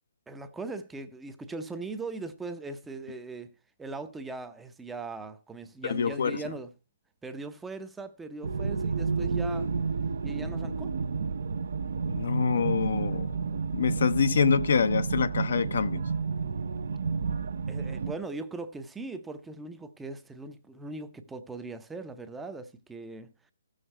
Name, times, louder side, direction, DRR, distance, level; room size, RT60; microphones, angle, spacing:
voice 1, 0.3-3.5 3.8-6.7 7.2-9.7 10.2-10.9 17.7-23.3, right 3 dB, 5° right, 0.7 m, -40 dB
voice 2, 5.8-6.4 12.1-13.4 13.7-16.0, left 5 dB, 65° left, 0.7 m, -26 dB
sound 1, 8.4-18.1, right 5 dB, 70° right, 0.8 m, -31 dB
15.5 x 6.5 x 4.3 m
hypercardioid pair, 150°, 0 cm